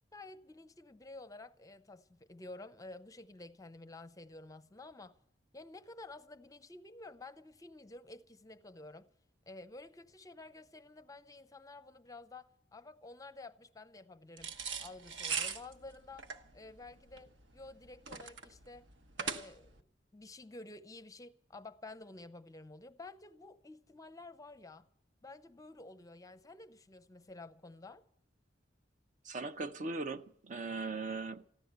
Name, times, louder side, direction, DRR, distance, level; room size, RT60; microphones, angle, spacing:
voice 1, 0.1-5.2 5.5-9.1 9.5-14.5 14.8-16.3 16.5-18.9 19.2-19.8 20.1-24.9 25.2-28.0, left 2 dB, 20° left, 0.6 m, -51 dB
sound 1, 14.4-19.8, right 5 dB, 70° right, 1.2 m, -40 dB
voice 2, 29.2-31.5, right 3 dB, 40° right, 0.6 m, -39 dB
15.0 x 11.5 x 8.0 m
head